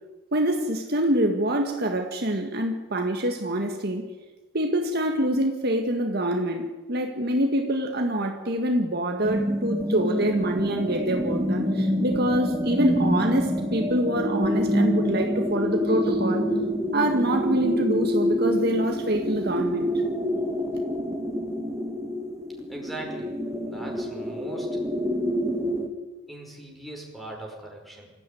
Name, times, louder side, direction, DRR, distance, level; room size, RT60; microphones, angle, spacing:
voice 1, 0.3-4.1 4.5-16.5 16.9-19.9, right 1 dB, 50° right, 1.9 m, -25 dB
sound 1, 9.2-25.9, equal, 15° right, 2.2 m, -27 dB
voice 2, 22.7-23.4 23.6-24.8 26.3-28.1, right 1 dB, ahead, 5.4 m, -40 dB
26.0 x 15.0 x 9.4 m
head